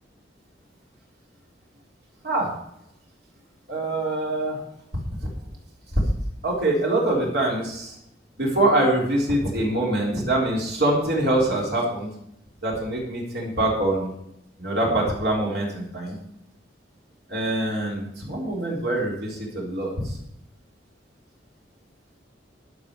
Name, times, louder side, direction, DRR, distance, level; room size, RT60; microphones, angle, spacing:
voice 1, 2.2-2.6 3.7-4.6 5.9-6.0 6.4-8.0 8.4-12.1 12.6-14.1 14.6-16.2 17.3-20.2, right 1 dB, 60° right, -2 dB, 3.8 m, -24 dB
12.0 x 8.0 x 6.7 m, 0.77 s
head